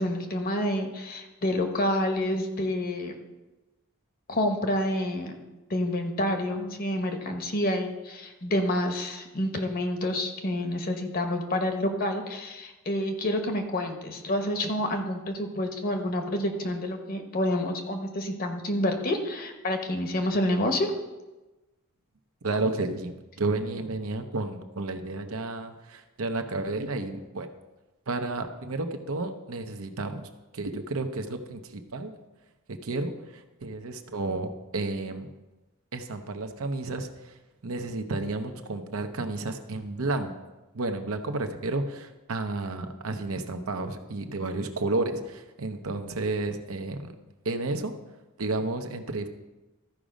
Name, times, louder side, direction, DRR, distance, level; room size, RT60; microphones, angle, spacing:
voice 1, 0.0-3.1 4.3-5.3 5.7-20.9 22.5-22.6, left 1 dB, 40° left, 5 dB, 1.0 m, -28 dB
voice 2, 22.4-27.5 28.1-30.2 30.5-32.1 32.7-35.3 35.9-37.3 37.6-40.3 40.7-47.1 47.4-47.9 48.4-49.3, right 2 dB, 75° right, 6 dB, 0.8 m, -31 dB
13.5 x 5.0 x 5.1 m, 1.1 s
head